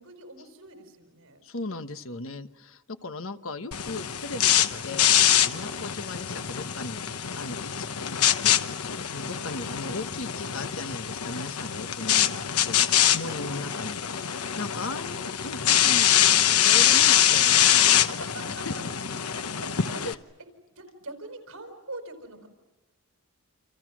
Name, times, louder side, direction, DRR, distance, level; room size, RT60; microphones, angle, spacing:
voice 1, 0.0-1.4 3.3-3.5 5.5-5.7 13.0-13.7 17.6-18.8 19.6-20.0 20.7-22.5, right 2 dB, 70° right, 7 dB, 4.7 m, -44 dB
voice 2, 1.4-5.1 5.4-12.8 13.1-14.0 14.6-18.0 18.7-18.8 20.0-20.2, left 2 dB, 65° left, 9 dB, 1.3 m, -38 dB
sound 1, 3.7-20.1, left 10 dB, 90° left, 1.1 m, -24 dB
29.0 x 27.5 x 6.2 m, 1.2 s
head